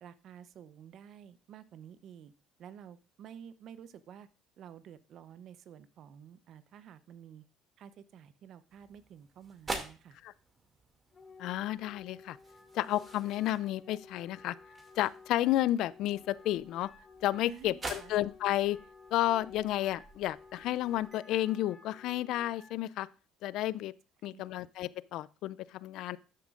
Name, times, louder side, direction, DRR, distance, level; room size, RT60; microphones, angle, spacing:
voice 1, 0.0-2.3 2.6-4.3 4.6-7.4 7.8-10.2 17.5-18.1 24.2-24.6, right 9 dB, 60° right, 0.7 m, -51 dB
sound 1, 8.7-21.2, right 3 dB, 30° right, 2.2 m, -47 dB
Wind instrument woodwind instrument, 11.1-22.8, left 4 dB, 30° left, 2.4 m, -55 dB
voice 2, 11.4-12.4 12.7-14.6 15.0-16.9 17.2-18.8 19.1-23.1 23.4-23.9 24.2-26.2, left 14 dB, 70° left, 0.3 m, -31 dB
12.0 x 7.2 x 2.5 m
supercardioid pair, 90°, 0 cm